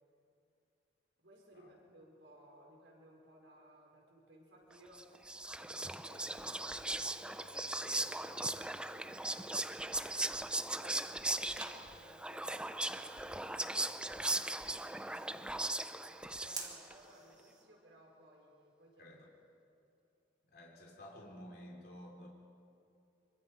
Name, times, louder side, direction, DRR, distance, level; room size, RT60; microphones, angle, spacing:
voice 1, 1.2-10.3 10.7-19.2, equal, 80° right, -1 dB, 4.9 m, -60 dB
Whispering, 4.9-16.9, right 2 dB, 5° right, 0.5 m, -38 dB
sound 1, 11.5-17.6, right 4 dB, 20° right, 2.0 m, -53 dB
voice 2, 19.0-19.3 20.5-22.3, equal, 55° left, -2 dB, 3.0 m, -52 dB
25.0 x 24.0 x 4.9 m, 2.6 s
head